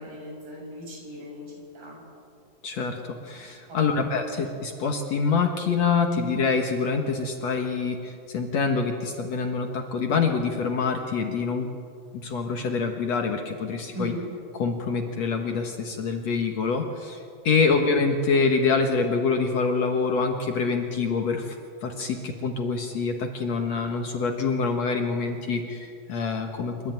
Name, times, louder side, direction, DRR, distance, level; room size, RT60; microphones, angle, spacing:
voice 1, 0.0-2.0 3.7-4.0 13.9-14.2, left 1 dB, 75° right, -3 dB, 9.4 m, -38 dB
voice 2, 2.6-11.7 12.1-14.1 14.5-21.6 21.8-26.9, left 4 dB, 55° left, 3 dB, 2.3 m, -26 dB
28.0 x 13.5 x 9.2 m, 2.4 s
omnidirectional pair, 4.1 m